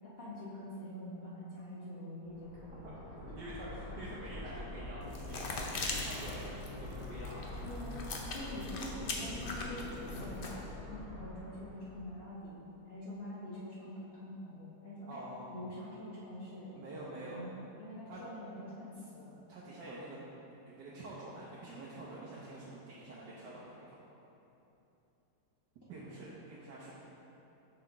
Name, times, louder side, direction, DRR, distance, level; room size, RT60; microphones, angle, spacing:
voice 1, 0.0-2.9 7.6-12.6 12.8-15.2 15.5-16.8 17.3-19.3, left 1 dB, 40° left, -11 dB, 1.2 m, -45 dB
sound 1, 2.2-12.1, left 1 dB, 60° left, 1.5 m, -45 dB
voice 2, 3.4-6.5 6.8-7.5 15.1-15.6 16.8-17.4 18.1-18.2 19.5-20.2 20.7-23.9 25.9-26.9, right 2 dB, 80° right, -7 dB, 1.5 m, -47 dB
sound 2, 5.0-10.6, left 3 dB, 80° left, 0.4 m, -41 dB
6.6 x 5.7 x 3.5 m, 3.0 s
omnidirectional pair, 1.8 m